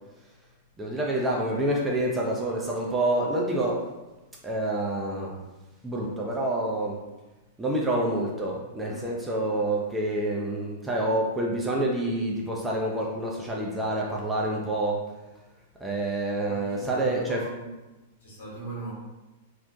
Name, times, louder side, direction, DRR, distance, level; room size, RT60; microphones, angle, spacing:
voice 1, 0.8-3.8 4.4-5.4 5.8-7.0 7.6-15.0 15.8-17.4, right 1 dB, 10° right, -3 dB, 0.3 m, -27 dB
voice 2, 8.9-9.2 16.5-17.8 18.2-18.9, right 3 dB, 60° left, -7 dB, 1.0 m, -40 dB
2.4 x 2.1 x 2.5 m, 1.1 s
figure-of-eight pair, 100°, 0 cm